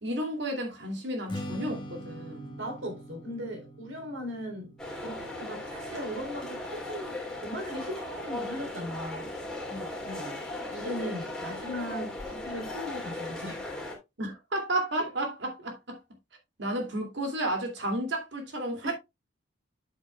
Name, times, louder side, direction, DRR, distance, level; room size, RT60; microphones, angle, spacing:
voice 1, 0.0-2.6 9.7-10.3 14.2-16.0 16.6-18.9, right 1 dB, 60° right, 2.5 m, -32 dB
Strum, 1.3-7.6, equal, 25° left, 1.3 m, -44 dB
voice 2, 2.6-9.3 10.7-13.7 15.0-15.1 18.8-18.9, equal, 85° right, 3.4 m, -38 dB
sound 1, 4.8-14.0, left 1 dB, 5° left, 2.7 m, -37 dB
8.4 x 8.0 x 2.3 m
head